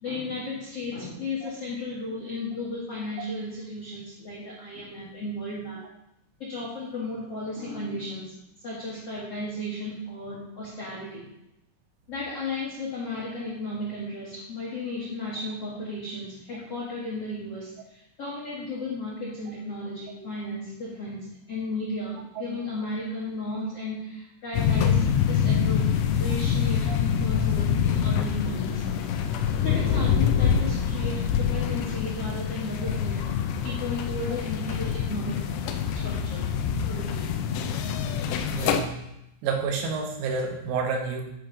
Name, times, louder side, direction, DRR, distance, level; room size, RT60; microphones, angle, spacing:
voice 1, 0.0-5.8 6.4-8.3 8.6-11.3 12.1-25.9 26.2-28.9 29.6-33.4 33.6-35.5 35.9-36.6 36.9-37.3, left 2 dB, 65° left, -6 dB, 1.5 m, -34 dB
sound 1, 24.5-38.8, left 7 dB, 85° left, 2.5 m, -25 dB
voice 2, 38.5-39.0 39.4-41.2, right 4 dB, 85° right, 3 dB, 4.2 m, -29 dB
11.0 x 5.1 x 5.9 m, 0.84 s
omnidirectional pair, 6.0 m